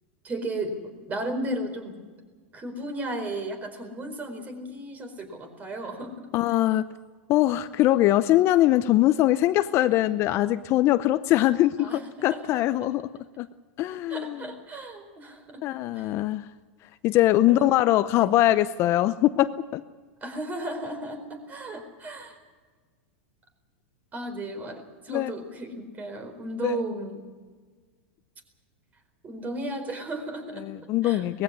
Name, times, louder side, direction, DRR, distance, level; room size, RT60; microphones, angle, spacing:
voice 1, 0.2-0.7 1.1-2.0 2.5-6.3 11.8-12.6 14.1-15.6 15.9-16.1 17.5-17.7 18.1-18.5 20.2-22.4 24.1-27.2 29.2-30.6 31.0-31.2, right 1 dB, 25° right, 7 dB, 4.4 m, -34 dB
voice 2, 6.3-6.8 7.3-13.1 13.4-13.5 13.8-14.4 15.6-16.5 17.0-19.8 25.1-25.3 26.6-26.8 30.6-31.4, left 14 dB, 40° left, 13 dB, 0.7 m, -22 dB
19.5 x 15.5 x 9.6 m, 1.5 s
hypercardioid pair, 115°, 6 cm